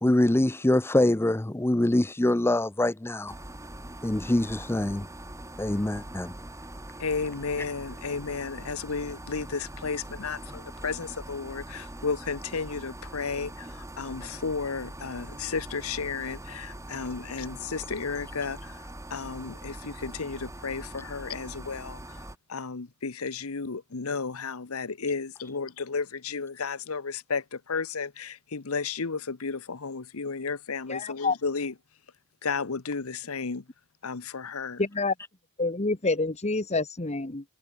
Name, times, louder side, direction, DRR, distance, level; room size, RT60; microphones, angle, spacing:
voice 1, 0.0-3.3 4.0-5.1 5.6-6.3, left 1 dB, 10° left, 0.5 m, -24 dB
sound 1, 3.3-22.4, right 1 dB, 15° right, 2.7 m, -42 dB
voice 2, 7.0-13.7 14.0-18.7 19.1-22.0 22.5-31.7 32.4-33.6 34.0-34.8, left 5 dB, 85° left, 1.0 m, -33 dB
voice 3, 30.9-31.4 34.8-35.1 35.6-37.4, left 3 dB, 30° left, 1.4 m, -27 dB
head